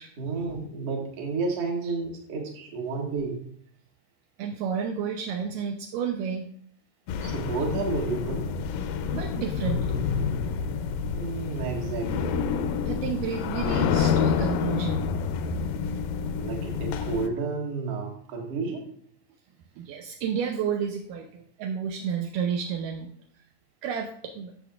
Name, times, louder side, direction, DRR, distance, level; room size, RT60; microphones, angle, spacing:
voice 1, 0.2-3.4 7.2-8.5 11.2-12.4 13.2-13.3 16.4-18.9, right 4 dB, 50° right, -1 dB, 2.1 m, -31 dB
voice 2, 4.4-6.5 9.1-10.0 12.9-15.0 19.8-23.1 23.8-24.5, right 7 dB, 80° right, 3 dB, 1.9 m, -31 dB
sound 1, 7.1-17.3, left 6 dB, 80° left, 2.1 m, -28 dB
12.5 x 7.0 x 2.4 m, 0.62 s
omnidirectional pair, 4.4 m